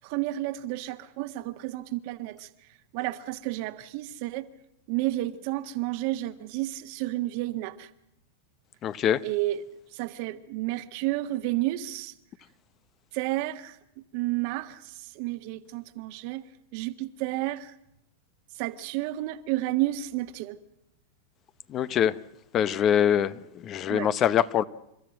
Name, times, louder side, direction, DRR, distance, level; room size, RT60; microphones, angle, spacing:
voice 1, 0.0-2.5 2.9-4.4 4.9-7.9 9.2-9.6 9.9-12.1 13.1-13.7 14.1-16.4 16.7-17.7 18.6-20.6 23.9-24.1, right 16 dB, 55° right, 1.5 m, -31 dB
voice 2, 8.8-9.2 21.7-22.1 22.5-24.6, left 9 dB, 35° left, 0.9 m, -24 dB
29.5 x 13.5 x 7.6 m
hypercardioid pair, 100°, 0 cm